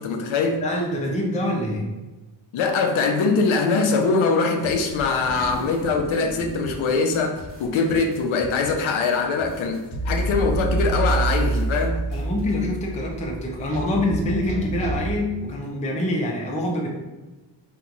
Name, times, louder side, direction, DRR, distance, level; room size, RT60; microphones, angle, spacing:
voice 1, 0.0-0.6 2.5-12.0, left 4 dB, 90° left, 4 dB, 0.6 m, -22 dB
voice 2, 0.6-1.9 12.1-16.9, left 1 dB, 15° left, -1 dB, 0.3 m, -25 dB
sound 1, 4.6-12.5, equal, 30° right, 0.8 m, -42 dB
sound 2, 4.9-7.3 7.6-7.7 9.9-15.2, right 2 dB, 65° right, 1.5 m, -28 dB
2.9 x 2.2 x 3.7 m, 1.1 s
wide cardioid pair, 175°, 47 cm